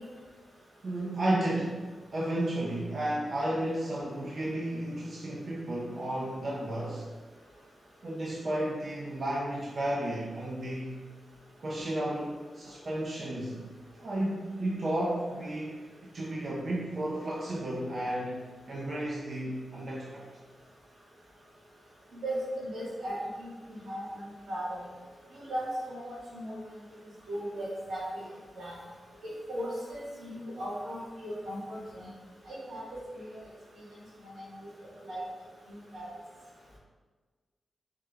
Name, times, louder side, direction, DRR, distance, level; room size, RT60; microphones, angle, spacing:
voice 1, 0.8-1.9 2.1-7.1 8.0-11.0 11.6-13.7 14.0-15.9 16.1-18.3 18.7-20.2 32.0-32.1, right 1 dB, 60° right, -5 dB, 0.5 m, -33 dB
voice 2, 22.2-23.5 23.8-24.8 25.3-26.6 27.3-28.2 28.5-28.7 29.2-32.1 32.5-33.3 34.2-34.4 35.0-35.2 35.7-36.1, equal, 90° right, -7 dB, 1.1 m, -37 dB
3.6 x 2.2 x 3.1 m, 1.4 s
cardioid pair, 50°, 0 cm